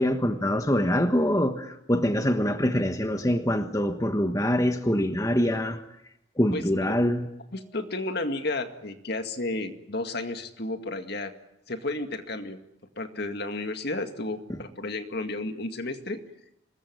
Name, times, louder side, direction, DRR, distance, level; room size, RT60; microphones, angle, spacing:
voice 1, 0.0-5.8 6.4-7.2, equal, 15° left, 6 dB, 1.3 m, -24 dB
voice 2, 6.5-7.0 7.5-11.3 11.7-12.6 13.0-16.2, left 2 dB, 55° left, 7 dB, 2.1 m, -32 dB
25.5 x 21.0 x 9.6 m, 0.81 s
head